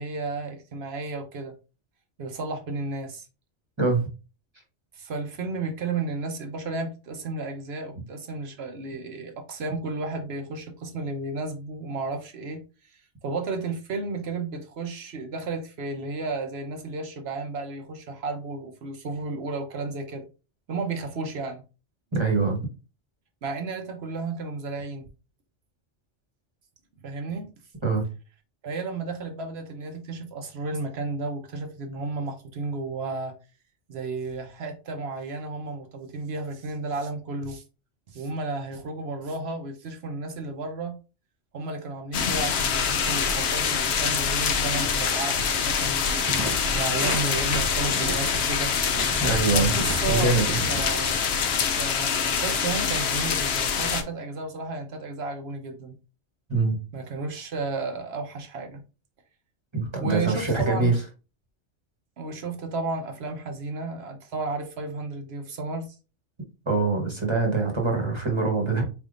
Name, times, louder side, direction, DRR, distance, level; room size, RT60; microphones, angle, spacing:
voice 1, 0.0-1.5 2.2-3.3 4.9-12.6 13.2-20.3 20.7-21.6 23.4-25.0 27.0-27.5 28.6-33.3 33.9-37.6 38.1-40.9 41.5-46.2 46.7-48.7 49.5-50.4 50.7-51.2 51.7-55.9 56.9-58.8 60.0-61.0 62.2-65.9, right 3 dB, 65° right, 1.0 m, -33 dB
voice 2, 22.1-22.6 27.8-28.0 49.2-49.7 50.1-50.6 56.5-56.8 59.7-60.9 66.7-68.8, right 3 dB, 25° right, 1.1 m, -24 dB
sound 1, 42.1-54.0, left 6 dB, 65° left, 0.8 m, -25 dB
sound 2, 46.2-51.9, right 3 dB, 45° right, 0.3 m, -37 dB
4.3 x 3.5 x 2.5 m
omnidirectional pair, 1.2 m